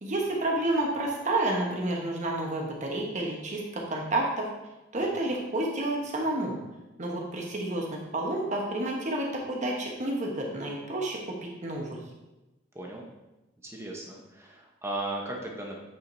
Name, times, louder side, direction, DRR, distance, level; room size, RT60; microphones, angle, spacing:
voice 1, 0.0-4.5 4.9-6.5 7.0-11.3 11.6-12.0, right 1 dB, 40° right, -1 dB, 1.1 m, -30 dB
voice 2, 13.6-15.8, right 2 dB, 15° right, -1 dB, 1.0 m, -37 dB
8.7 x 5.0 x 2.7 m, 1.0 s
head